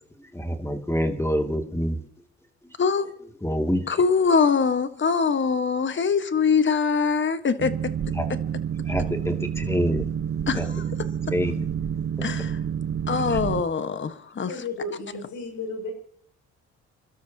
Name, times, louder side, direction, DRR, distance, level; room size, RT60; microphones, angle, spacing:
voice 1, 0.2-2.0 3.4-4.0 8.1-8.3 8.9-10.1 10.5-10.7 11.3-11.7 13.3-13.4, equal, 10° left, 2.5 m, -26 dB
voice 2, 3.9-7.7 10.5-10.8 12.2-12.6 13.1-14.5, left 5 dB, 40° left, 1.5 m, -23 dB
Boat Water vehicle, 7.6-13.6, right 8 dB, 50° right, 1.2 m, -29 dB
voice 3, 14.4-15.9, left 3 dB, 80° left, 6.9 m, -33 dB
29.0 x 12.5 x 2.9 m
cardioid pair, 90°, 30 cm